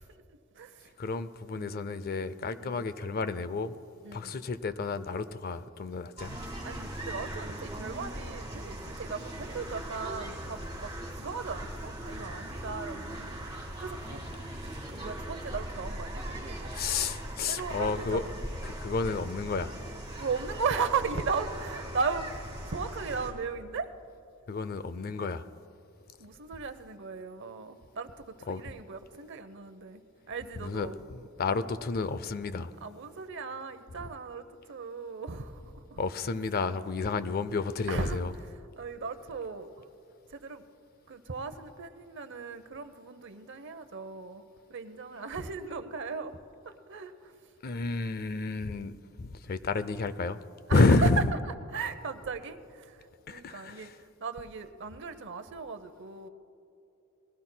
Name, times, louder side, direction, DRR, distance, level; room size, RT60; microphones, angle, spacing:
voice 1, 0.0-0.9 1.6-1.7 2.6-2.7 4.0-4.4 6.6-13.3 13.8-14.2 14.9-16.9 17.5-18.4 20.2-23.9 26.2-30.9 32.8-36.0 37.9-39.9 40.3-40.6 41.1-44.4 44.7-46.4 46.6-47.5 50.7-51.1 51.7-56.3, right 5 dB, 55° right, 0.7 m, -37 dB
voice 2, 1.0-3.8 4.1-6.5 16.7-18.2 18.6-19.7 24.5-25.5 28.5-28.6 30.6-32.7 36.0-38.3 47.6-50.4 50.7-51.3 53.3-53.9, left 3 dB, 45° left, 0.4 m, -30 dB
sound 1, 6.2-23.3, right 1 dB, 20° right, 2.9 m, -39 dB
21.0 x 16.0 x 2.2 m
head